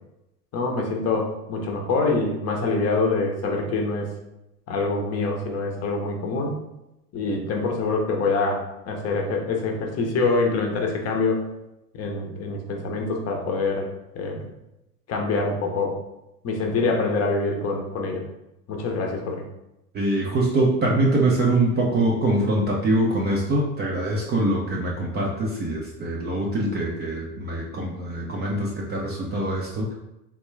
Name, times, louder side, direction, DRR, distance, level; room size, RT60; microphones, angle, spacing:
voice 1, 0.5-4.1 4.7-6.6 7.1-11.4 11.9-13.9 14.1-14.5 15.1-16.0 16.4-18.2 18.7-19.4, left 3 dB, 35° left, 2 dB, 0.6 m, -25 dB
voice 2, 19.9-29.9, right 1 dB, 25° right, -2 dB, 0.4 m, -23 dB
3.5 x 2.2 x 3.1 m, 0.90 s
hypercardioid pair, 100°, 47 cm